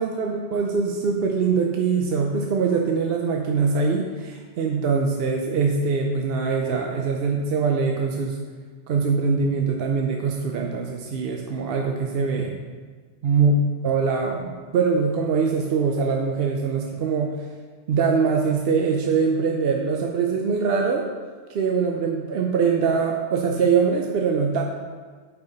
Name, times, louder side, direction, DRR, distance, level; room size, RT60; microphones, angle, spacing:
voice 1, 0.0-8.4 8.9-12.5 13.2-13.5 13.8-17.3 17.9-21.0 21.5-24.6, right 5 dB, 65° right, 1 dB, 0.8 m, -23 dB
8.4 x 4.8 x 3.9 m, 1.5 s
omnidirectional pair, 1.1 m